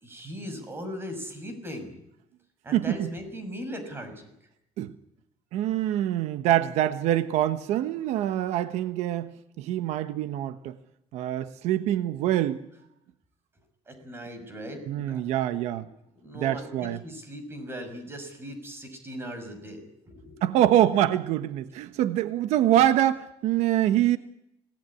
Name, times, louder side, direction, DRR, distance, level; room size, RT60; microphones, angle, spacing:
voice 1, 0.0-2.0 2.6-4.3 13.9-15.5 16.2-20.4, equal, 20° right, 6.0 m, -39 dB
voice 2, 2.7-3.1 4.8-4.9 5.5-9.3 9.6-10.8 11.1-12.7 14.9-15.9 16.3-17.0 20.4-24.2, right 12 dB, 90° right, 1.1 m, -25 dB
26.5 x 18.0 x 9.9 m
cardioid pair, 160°, 11 cm